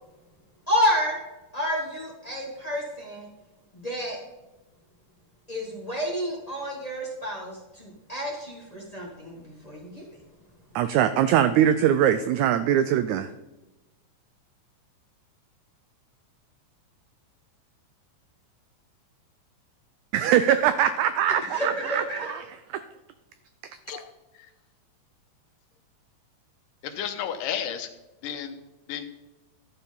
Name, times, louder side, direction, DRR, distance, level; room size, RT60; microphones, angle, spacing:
voice 1, 0.7-1.2 1.5-3.3 3.7-4.2 5.5-10.0 21.5-22.3, equal, 25° left, -3 dB, 0.8 m, -29 dB
voice 2, 10.8-13.3 20.1-22.4 23.9-24.0, right 10 dB, 85° right, 11 dB, 1.7 m, -22 dB
voice 3, 26.8-27.9 28.2-28.6 28.9-29.1, left 9 dB, 85° left, 8 dB, 2.4 m, -32 dB
12.5 x 4.6 x 5.3 m, 1.0 s
omnidirectional pair, 3.8 m